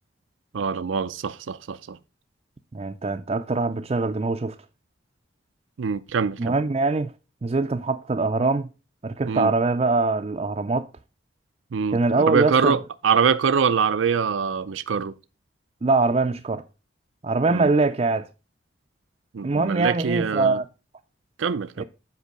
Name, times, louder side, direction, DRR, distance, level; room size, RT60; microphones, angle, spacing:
voice 1, 0.5-2.0 5.8-6.5 9.3-9.5 11.7-15.1 17.5-17.7 19.3-20.6 21.4-21.8, right 6 dB, 90° right, 0.5 m, -24 dB
voice 2, 2.7-4.6 6.4-7.1 7.4-8.7 9.0-10.9 11.9-12.8 15.8-16.6 17.2-18.3 19.4-20.6 21.8-21.9, right 3 dB, 35° right, 0.4 m, -23 dB
8.2 x 5.4 x 5.0 m
head